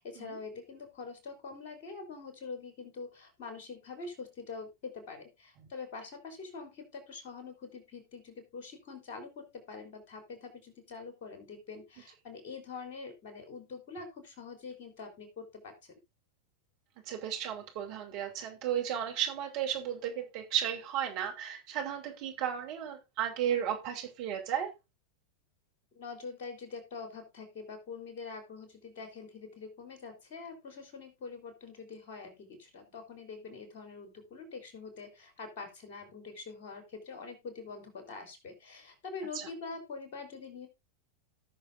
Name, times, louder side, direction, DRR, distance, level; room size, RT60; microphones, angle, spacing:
voice 1, 0.0-16.0 25.9-40.7, left 4 dB, 50° left, 3.6 m, -45 dB
voice 2, 17.1-24.7 39.3-39.5, right 9 dB, 45° right, 2.7 m, -34 dB
18.0 x 6.6 x 2.6 m
figure-of-eight pair, 90°, 0 cm